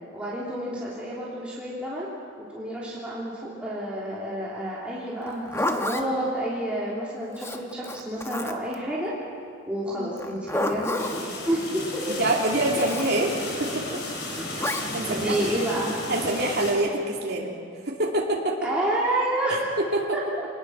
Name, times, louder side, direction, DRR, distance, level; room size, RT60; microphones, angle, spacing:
voice 1, 0.1-2.1 2.4-9.1 9.7-12.1 12.7-12.9 15.1-15.9 18.6-19.6 20.1-20.5, right 1 dB, 5° right, -8 dB, 3.0 m, -29 dB
Zipper (clothing), 5.2-6.1 7.4-8.8 10.2-11.2 12.7-13.1 14.6-14.9, left 1 dB, 15° left, 1.2 m, -30 dB
sound 1, 11.0-16.7, left 2 dB, 60° left, 4.7 m, -33 dB
voice 2, 12.2-13.3 13.6-13.8 14.6-15.3 16.1-17.5 17.9-18.6 19.5-20.1, right 1 dB, 55° right, -2 dB, 2.5 m, -26 dB
25.5 x 20.0 x 6.1 m, 2.4 s
head